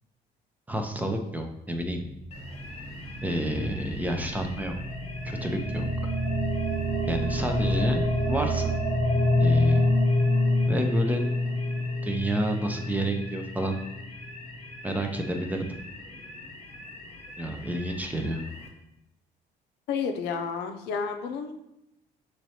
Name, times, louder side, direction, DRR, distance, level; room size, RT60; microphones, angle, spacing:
voice 1, 0.7-2.0 3.2-4.8 5.2-5.9 7.1-8.7 9.4-9.8 10.7-11.3 12.0-13.7 14.8-15.8 17.4-18.4, right 1 dB, 10° right, 4 dB, 0.5 m, -29 dB
sound 1, 2.1-14.0, left 1 dB, 80° right, 1.0 m, -27 dB
sound 2, 2.3-18.7, left 2 dB, 35° left, 1.0 m, -44 dB
voice 2, 19.9-21.5, left 6 dB, 85° left, 5 dB, 0.5 m, -31 dB
5.9 x 3.1 x 2.8 m, 0.84 s
cardioid pair, 110°, 17 cm